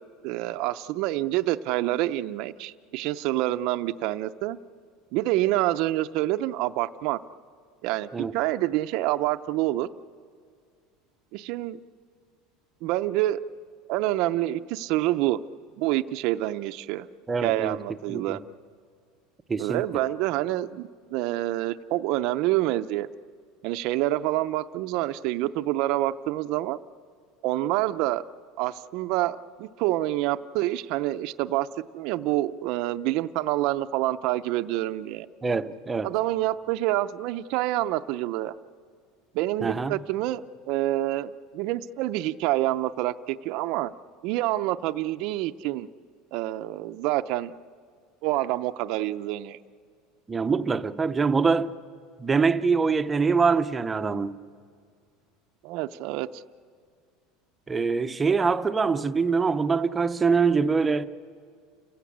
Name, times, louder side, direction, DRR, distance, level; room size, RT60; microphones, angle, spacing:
voice 1, 0.2-4.6 5.1-7.2 7.8-9.9 11.3-11.8 12.8-13.4 13.9-15.4 15.8-17.1 17.4-18.4 19.6-23.1 23.6-26.8 27.4-28.2 28.6-31.7 31.9-35.3 36.0-38.5 39.3-43.9 44.2-45.9 46.3-47.5 48.2-49.6 55.6-56.4, right 15 dB, 50° right, 0.5 m, -27 dB
voice 2, 17.3-17.8 18.1-18.4 19.5-19.8 35.4-36.1 39.6-39.9 50.3-51.7 52.2-54.4 57.7-61.1, right 5 dB, 15° right, 0.6 m, -24 dB
29.5 x 16.0 x 8.6 m
cardioid pair, 165°, 0 cm